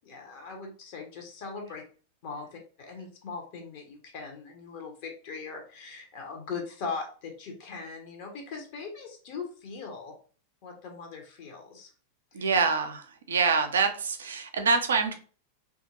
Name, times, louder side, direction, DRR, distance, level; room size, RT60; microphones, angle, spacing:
voice 1, 0.0-1.8 2.2-10.2 10.6-11.9 12.3-12.5, left 4 dB, 45° left, 2 dB, 0.7 m, -40 dB
voice 2, 12.3-15.1, right 5 dB, 65° right, 7 dB, 0.4 m, -26 dB
2.8 x 2.3 x 2.7 m, 0.40 s
figure-of-eight pair, 90°, 0 cm